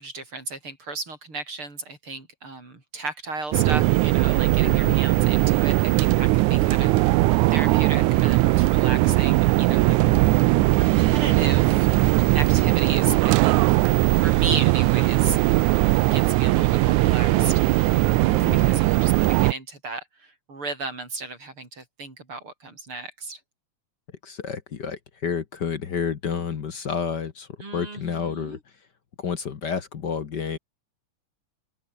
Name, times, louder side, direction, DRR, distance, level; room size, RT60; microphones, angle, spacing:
voice 1, 0.0-10.2 10.8-11.9 12.3-13.8 14.2-15.4 16.0-18.2 18.5-23.4 27.6-28.6, right 3 dB, 40° right, 6.7 m, -35 dB
sound 1, 3.5-19.5, right 19 dB, 80° right, 2.0 m, -19 dB
voice 2, 4.6-5.0 18.3-18.9 24.2-28.6 29.2-30.6, left 6 dB, 50° left, 1.4 m, -30 dB
open air
omnidirectional pair, 3.5 m